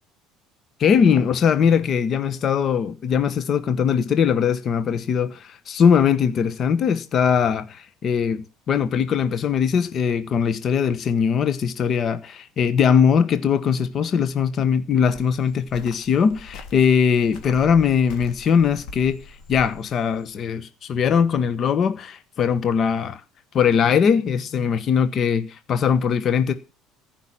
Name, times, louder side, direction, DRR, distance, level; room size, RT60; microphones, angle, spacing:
voice 1, 0.8-23.2 23.5-26.5, left 7 dB, 40° left, 1.1 m, -20 dB
Cricket, 15.1-20.3, left 3 dB, 60° left, 2.6 m, -42 dB
14.5 x 5.8 x 8.8 m
cardioid pair, 120°, 0 cm